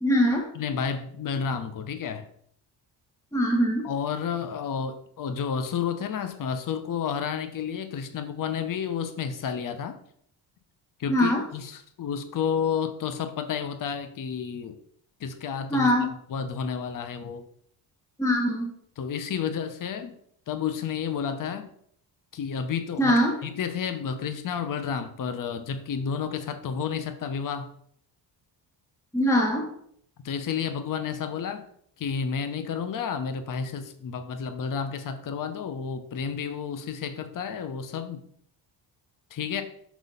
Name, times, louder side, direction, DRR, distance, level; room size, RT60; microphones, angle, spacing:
voice 1, 0.0-0.5 3.3-3.9 11.1-11.4 15.7-16.1 18.2-18.7 23.0-23.4 29.1-29.7, equal, 5° left, 1 dB, 1.2 m, -22 dB
voice 2, 0.5-2.3 3.8-10.0 11.0-14.8 15.2-15.9 16.3-17.5 19.0-20.2 20.5-21.7 22.3-27.7 30.2-31.7 32.0-38.3 39.3-39.6, left 7 dB, 45° left, 9 dB, 0.8 m, -31 dB
6.1 x 4.1 x 5.4 m, 0.66 s
cardioid pair, 95°, 47 cm